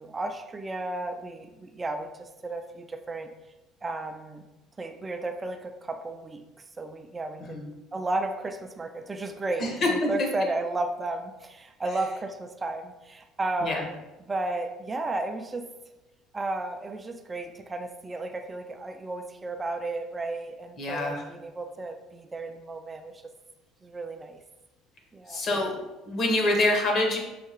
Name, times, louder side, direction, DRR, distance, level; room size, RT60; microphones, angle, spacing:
voice 1, 0.0-3.3 3.8-4.4 4.8-6.4 6.8-7.6 7.9-15.7 16.3-23.2 23.8-24.4 25.1-25.4, right 2 dB, 20° right, 7 dB, 0.3 m, -33 dB
voice 2, 9.6-10.1 13.6-13.8 20.8-21.2 25.3-25.7 26.0-27.2, left 2 dB, 45° left, 0 dB, 1.1 m, -25 dB
5.6 x 2.8 x 2.9 m, 1.0 s
cardioid pair, 120°, 0 cm